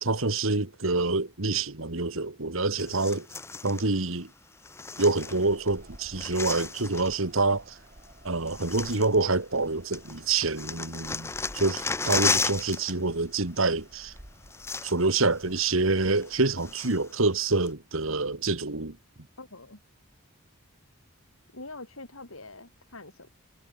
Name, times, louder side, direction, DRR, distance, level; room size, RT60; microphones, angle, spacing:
voice 1, 0.0-3.3 3.6-4.3 5.0-7.7 8.3-14.1 14.8-19.0, right 3 dB, 70° right, 1.9 m, -27 dB
sound 1, 2.8-3.9 4.6-5.7 6.0-7.2 8.0-8.1 8.5-9.6 9.9-12.9 13.2-13.4 14.2-14.3 14.5-15.2 15.6-15.7 16.2-17.1 17.7-17.8, left 4 dB, 10° left, 0.6 m, -33 dB
Wind, 5.1-16.7, right 1 dB, 35° right, 5.5 m, -53 dB
voice 2, 19.4-19.8 21.5-23.3, left 2 dB, 80° left, 7.1 m, -44 dB
head